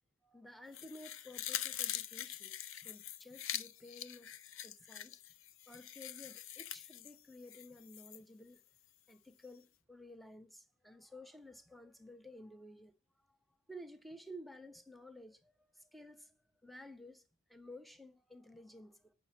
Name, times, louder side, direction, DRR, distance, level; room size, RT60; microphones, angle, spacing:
voice 1, 0.2-4.4 4.6-5.2 5.7-8.6 9.1-12.9 13.3-13.4 13.7-17.2 17.5-19.1, left 1 dB, ahead, 0.7 m, -54 dB
sound 1, 0.7-8.2 8.6-8.7, left 11 dB, 70° left, 0.6 m, -44 dB
8.8 x 5.7 x 4.1 m
head